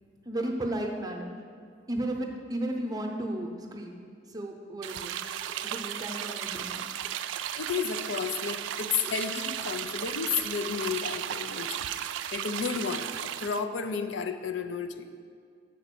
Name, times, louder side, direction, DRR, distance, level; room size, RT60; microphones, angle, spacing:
voice 1, 0.2-1.4 1.9-4.0 4.3-5.1 5.4-6.8, right 1 dB, 20° right, 1 dB, 0.7 m, -34 dB
sound 1, 4.8-13.6, right 10 dB, 85° right, 0.3 m, -35 dB
voice 2, 7.6-11.9 12.3-15.1, left 6 dB, 75° left, 9 dB, 0.4 m, -32 dB
7.3 x 4.5 x 6.7 m, 2.1 s
head